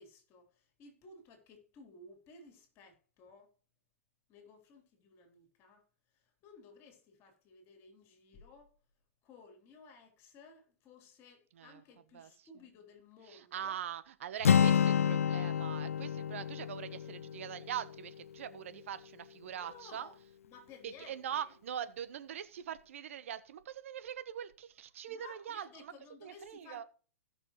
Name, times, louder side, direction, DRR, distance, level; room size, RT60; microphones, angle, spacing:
voice 1, 0.0-3.5 4.3-5.8 6.4-8.8 9.2-13.8 19.6-20.2 20.4-21.5 25.1-26.9, left 3 dB, 35° left, 3.5 m, -56 dB
voice 2, 12.1-12.5 13.3-20.1 20.8-25.9 26.2-26.8, right 9 dB, 70° right, 1.0 m, -42 dB
Acoustic guitar, 14.4-18.4, left 8 dB, 90° left, 0.4 m, -29 dB
17.0 x 6.3 x 3.1 m
hypercardioid pair, 120°, 7 cm